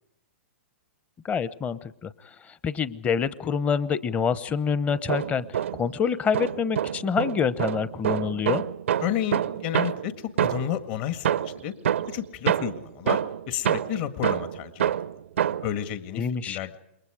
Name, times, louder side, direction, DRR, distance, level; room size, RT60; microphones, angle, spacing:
voice 1, 1.2-2.1 2.6-5.5 5.8-8.6 16.1-16.6, left 6 dB, 20° left, 16 dB, 1.0 m, -26 dB
sound 1, 4.9-6.0 6.3-10.8 11.2-15.8, right 10 dB, 70° right, 0.7 m, -27 dB
voice 2, 9.0-11.7 12.1-14.9 15.6-16.8, left 11 dB, 45° left, 10 dB, 1.8 m, -31 dB
28.0 x 22.5 x 5.0 m, 0.85 s
hypercardioid pair, 120°, 7 cm